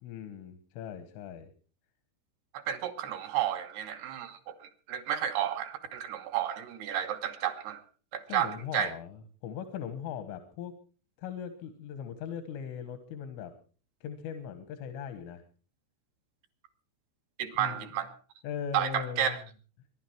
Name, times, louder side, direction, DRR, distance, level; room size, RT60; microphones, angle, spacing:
voice 1, 0.0-1.5 8.3-10.7 11.2-13.5 14.0-15.4 17.6-17.9 18.4-19.4, left 8 dB, 85° left, 9 dB, 3.9 m, -39 dB
voice 2, 2.5-7.8 8.1-8.9 17.4-18.1 18.7-19.4, right 10 dB, 65° right, 7 dB, 3.0 m, -32 dB
24.0 x 11.5 x 4.6 m, 0.39 s
omnidirectional pair, 5.5 m